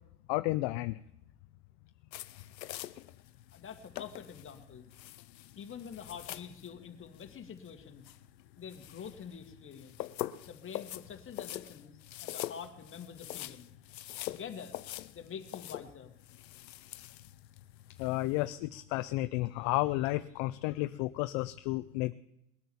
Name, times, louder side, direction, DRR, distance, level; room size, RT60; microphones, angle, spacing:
voice 1, 0.3-1.0 18.0-22.1, left 19 dB, 50° left, 13 dB, 0.6 m, -32 dB
sound 1, 2.1-18.4, left 14 dB, 90° left, 0.7 m, -45 dB
voice 2, 3.5-4.9 5.6-8.0 8.6-10.0 10.5-13.7 14.2-14.8 15.1-16.1, left 7 dB, 25° left, 5 dB, 1.9 m, -46 dB
19.5 x 9.0 x 7.1 m, 0.82 s
hypercardioid pair, 100°, 48 cm